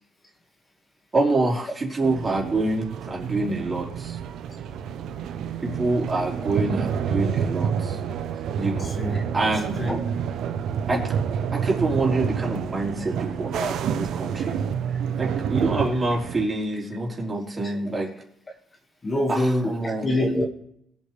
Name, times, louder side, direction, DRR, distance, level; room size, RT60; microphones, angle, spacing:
voice 1, 1.1-4.2 5.6-8.0 8.5-9.0 9.3-9.8 10.9-11.0 11.5-14.5 15.2-18.1 19.3-20.1, right 2 dB, 30° right, -2 dB, 4.7 m, -26 dB
sound 1, 2.0-16.5, right 7 dB, 75° right, 1.0 m, -28 dB
voice 2, 8.8-9.2 9.8-10.1 17.6-17.8 19.0-20.4, left 1 dB, 30° left, 2 dB, 2.2 m, -25 dB
22.5 x 8.7 x 3.5 m, 0.71 s
cardioid pair, 90°, 0 cm